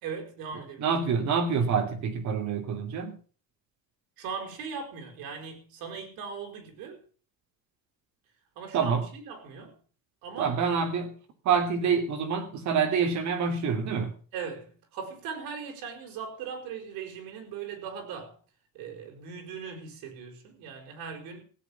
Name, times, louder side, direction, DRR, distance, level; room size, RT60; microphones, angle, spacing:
voice 1, 0.0-0.9 4.2-7.0 8.6-9.8 10.2-10.5 14.3-18.4 18.7-21.4, right 6 dB, 85° right, 5.3 m, -39 dB
voice 2, 0.8-3.2 8.7-9.1 10.4-11.2 11.4-14.2, right 6 dB, 55° right, 3.1 m, -27 dB
16.0 x 8.8 x 7.1 m
cardioid pair, 160°, 35 cm